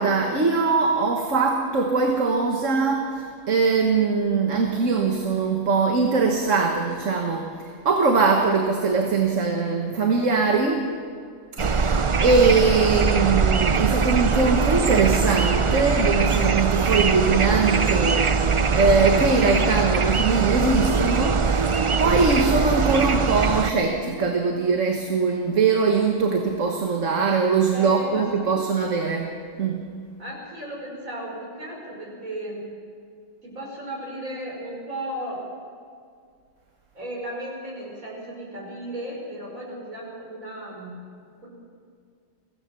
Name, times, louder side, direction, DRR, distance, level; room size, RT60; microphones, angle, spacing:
voice 1, 0.0-10.9 11.6-18.3 18.7-21.4 22.0-29.3 29.6-29.8, right 4 dB, 70° right, 2 dB, 1.8 m, -22 dB
sound 1, 11.6-23.7, right 5 dB, 40° right, 0.5 m, -22 dB
voice 2, 27.7-28.7 30.2-32.7 33.4-35.5 36.9-41.0 41.4-41.5, right 1 dB, 85° right, -2 dB, 5.5 m, -35 dB
23.5 x 16.5 x 6.9 m, 2.2 s
omnidirectional pair, 1.4 m